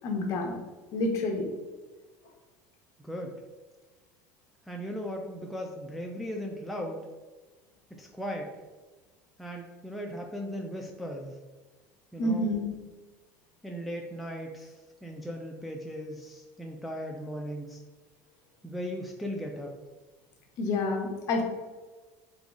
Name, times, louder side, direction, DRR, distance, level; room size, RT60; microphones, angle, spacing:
voice 1, 0.0-0.5 0.9-1.5 12.2-12.7 20.6-21.4, left 2 dB, 45° left, 1 dB, 0.9 m, -28 dB
voice 2, 4.7-7.1 8.0-8.5 9.4-11.4 12.1-12.5 13.6-17.8 18.6-19.8, equal, ahead, 0 dB, 0.3 m, -37 dB
3.7 x 3.0 x 3.5 m, 1.3 s
cardioid pair, 145°, 8 cm